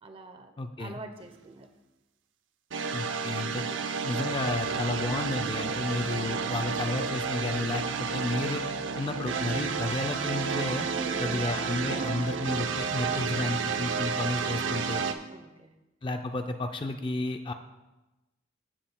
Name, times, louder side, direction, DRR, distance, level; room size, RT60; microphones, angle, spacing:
voice 1, 0.0-0.5 0.8-1.7 10.9-11.5 11.9-12.3 15.3-15.7, right 2 dB, 30° right, 7 dB, 0.7 m, -42 dB
voice 2, 0.6-1.0 2.9-3.6 4.0-8.6 9.0-10.9 11.2-15.0 16.0-17.5, left 2 dB, 25° left, 6 dB, 0.4 m, -32 dB
sound 1, 2.7-15.1, right 5 dB, 80° right, 0.6 m, -31 dB
14.5 x 7.6 x 2.2 m, 1.0 s
head